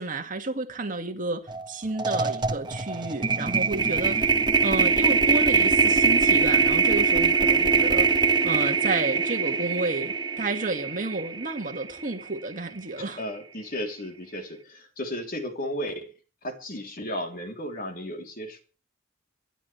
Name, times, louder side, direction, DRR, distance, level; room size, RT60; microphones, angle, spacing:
voice 1, 0.0-4.3 4.6-13.2, right 2 dB, 45° right, 2.3 m, -31 dB
sound 1, 1.5-1.7 2.0-12.2, right 5 dB, 25° right, 1.4 m, -23 dB
voice 2, 13.0-16.1 16.4-18.6, equal, 50° left, 3.6 m, -34 dB
27.0 x 11.5 x 3.5 m
head